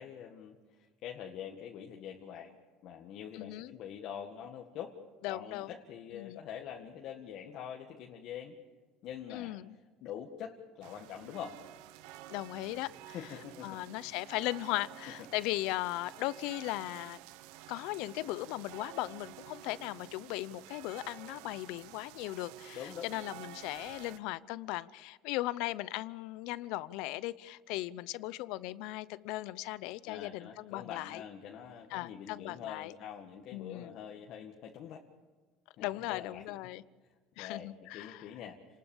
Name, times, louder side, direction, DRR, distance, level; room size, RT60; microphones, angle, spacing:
voice 1, 0.0-4.9 5.3-8.6 9.0-9.6 10.0-11.6 13.1-13.8 22.7-23.1 30.0-35.0 35.8-36.4 37.4-38.6, left 9 dB, 55° left, 1 dB, 1.8 m, -45 dB
voice 2, 3.3-3.7 5.2-5.7 6.1-6.4 9.3-9.7 12.3-13.2 13.6-17.2 17.7-31.2 31.9-33.0 33.5-33.9 35.8-36.8 37.4-38.2, left 17 dB, 70° left, 18 dB, 0.7 m, -38 dB
sound 1, 10.8-24.2, right 14 dB, 80° right, 0.9 m, -51 dB
29.5 x 20.0 x 7.2 m, 1.4 s
cardioid pair, 140°, 0 cm